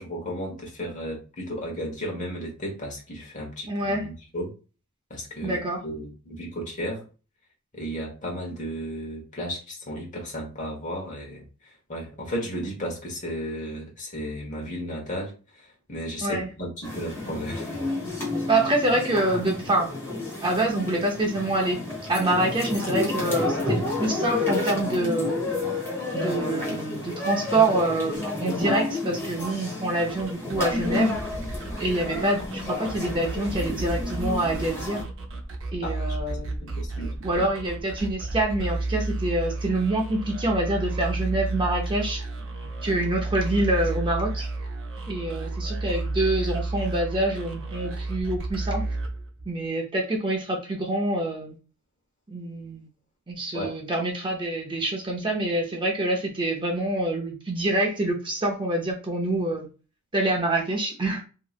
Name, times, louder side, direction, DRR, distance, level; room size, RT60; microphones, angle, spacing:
voice 1, 0.0-4.5 5.1-5.6 5.8-7.0 7.7-17.9 35.8-37.4 53.5-53.8, equal, 35° left, 1.1 m, -34 dB
voice 2, 3.7-4.1 5.4-5.8 16.2-16.5 18.5-19.9 20.4-21.8 22.1-25.4 26.1-31.2 31.8-35.0 35.7-36.7 37.2-42.2 42.8-44.5 45.1-48.8 49.5-51.6 52.3-52.9 53.3-59.7 60.1-61.2, right 2 dB, 25° right, 0.5 m, -26 dB
sound 1, 16.8-35.0, left 2 dB, 10° left, 1.0 m, -30 dB
sound 2, 30.0-49.6, right 2 dB, 60° right, 0.7 m, -32 dB
3.1 x 2.8 x 2.4 m
head